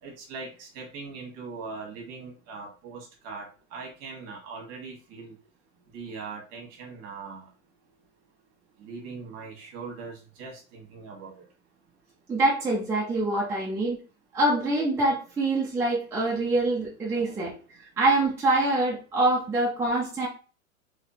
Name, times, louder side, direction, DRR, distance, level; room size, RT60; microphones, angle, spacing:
voice 1, 0.0-5.4 5.9-7.5 8.8-11.4 17.1-17.5, right 4 dB, 35° right, 1 dB, 1.5 m, -41 dB
voice 2, 12.3-14.0 14.3-17.5 18.0-20.3, right 2 dB, 5° right, -5 dB, 0.6 m, -25 dB
3.5 x 3.1 x 2.8 m, 0.35 s
hypercardioid pair, 130°, 43 cm